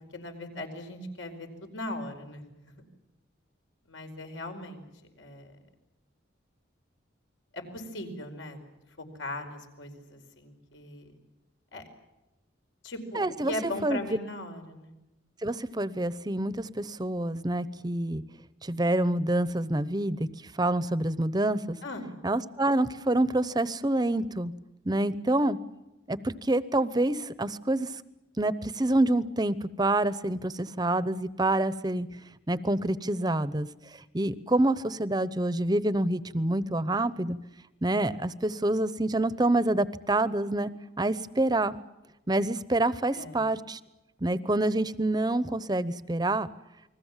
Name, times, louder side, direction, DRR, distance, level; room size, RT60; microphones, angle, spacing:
voice 1, 0.1-2.4 3.9-4.8 5.2-5.5 7.5-8.6 9.0-11.1 11.7-11.8 12.8-14.9 21.8-22.1 43.1-43.4, left 1 dB, 80° left, 5 dB, 5.0 m, -38 dB
voice 2, 13.1-14.2 15.4-18.2 18.6-20.3 20.6-21.8 22.2-24.5 24.8-25.6 26.1-27.9 28.4-32.1 32.5-33.7 34.1-37.4 37.8-40.7 41.0-41.7 42.3-43.8 44.2-46.5, right 1 dB, 20° right, 16 dB, 0.8 m, -27 dB
29.0 x 21.0 x 7.4 m, 0.99 s
head